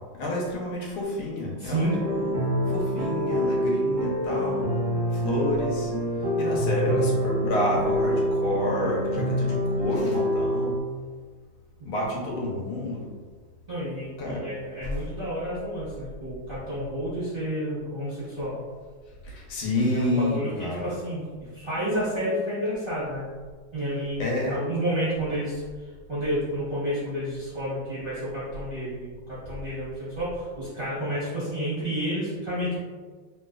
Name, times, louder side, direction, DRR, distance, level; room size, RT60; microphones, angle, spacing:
voice 1, 0.1-2.3 2.7-4.7 5.1-5.9 6.4-10.8 11.8-13.1 14.2-14.5 14.8-14.9 19.2-20.9 24.2-24.6, left 1 dB, 80° left, -3 dB, 1.6 m, -29 dB
voice 2, 1.6-2.0 13.7-18.6 19.9-21.2 21.5-23.2 23.7-25.6 26.1-32.8, equal, 40° right, -11 dB, 0.8 m, -30 dB
sound 1, 1.8-10.8, equal, 85° right, 0.7 m, -26 dB
3.2 x 3.1 x 2.3 m, 1.5 s
omnidirectional pair, 2.3 m